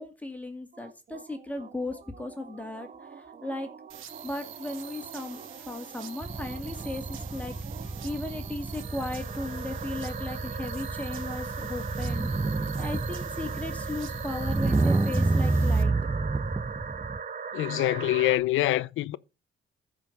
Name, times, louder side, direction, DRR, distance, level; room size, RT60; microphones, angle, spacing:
voice 1, 0.0-2.9 3.4-3.7 4.2-5.4 5.7-7.5 8.0-12.3 12.8-15.9, left 2 dB, 5° left, 2.3 m, -36 dB
sound 1, 0.7-18.4, right 6 dB, 45° right, 1.2 m, -41 dB
sound 2, 3.9-15.8, right 10 dB, 85° right, 1.3 m, -47 dB
sound 3, 6.2-17.2, right 3 dB, 15° right, 0.4 m, -29 dB
voice 2, 17.5-19.2, left 15 dB, 85° left, 0.6 m, -25 dB
14.5 x 5.1 x 5.4 m
cardioid pair, 90°, 20 cm